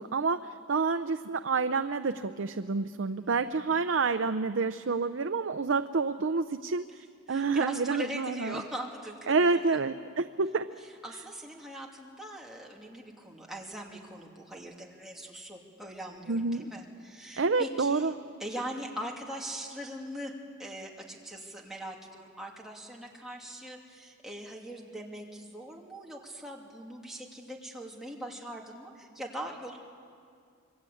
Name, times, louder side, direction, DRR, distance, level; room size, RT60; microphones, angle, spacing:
voice 1, 0.0-8.6 9.3-10.7 16.3-16.6 17.4-18.1, right 4 dB, 60° right, 10 dB, 0.6 m, -28 dB
voice 2, 3.1-3.5 7.3-9.8 10.8-18.1 18.4-20.3 20.6-29.8, right 1 dB, ahead, -2 dB, 2.7 m, -41 dB
27.0 x 22.5 x 8.5 m, 2.3 s
head